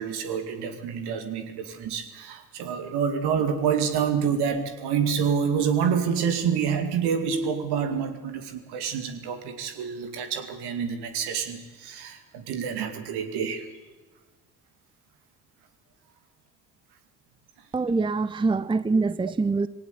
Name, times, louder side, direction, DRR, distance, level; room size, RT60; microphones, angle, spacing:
voice 1, 0.0-13.6, right 7 dB, 65° right, 7 dB, 2.4 m, -27 dB
voice 2, 17.7-19.7, right 3 dB, 10° right, 17 dB, 0.7 m, -24 dB
21.0 x 17.5 x 8.3 m, 1.2 s
hypercardioid pair, 45°, 42 cm